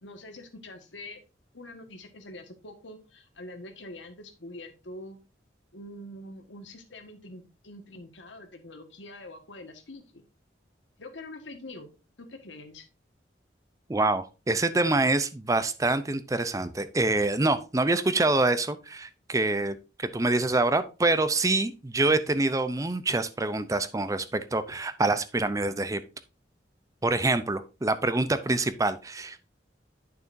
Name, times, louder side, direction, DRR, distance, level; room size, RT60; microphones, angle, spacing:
voice 1, 0.0-1.2 1.5-5.2 5.7-10.2 11.0-11.9 12.2-12.8, left 1 dB, 85° left, 7 dB, 1.5 m, -44 dB
voice 2, 13.9-26.0 27.0-29.4, right 2 dB, 20° right, 12 dB, 0.5 m, -26 dB
8.8 x 6.7 x 2.6 m, 0.30 s
head